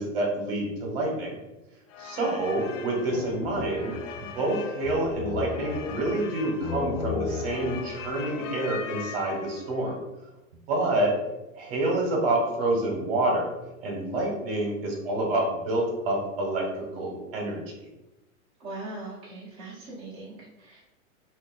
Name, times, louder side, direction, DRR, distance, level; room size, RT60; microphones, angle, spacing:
voice 1, 0.0-1.3 2.0-10.0 10.7-11.2 11.5-13.5 13.8-17.6, right 1 dB, 45° right, 0 dB, 1.1 m, -28 dB
sound 1, 1.9-9.8, left 5 dB, 65° left, 0.5 m, -35 dB
voice 2, 18.6-20.8, right 2 dB, 15° right, -7 dB, 0.7 m, -40 dB
2.9 x 2.6 x 3.8 m, 1.0 s
supercardioid pair, 165°, 41 cm